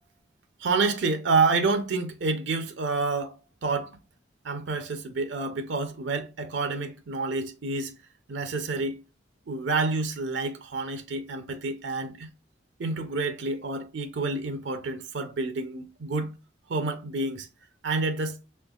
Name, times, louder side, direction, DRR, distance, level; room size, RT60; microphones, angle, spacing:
voice 1, 0.6-3.4 3.6-3.9 4.4-7.9 8.3-9.0 9.5-12.3 12.8-16.3 16.7-17.5 17.8-18.4, right 3 dB, 75° right, 0.5 m, -28 dB
4.4 x 3.1 x 2.3 m
head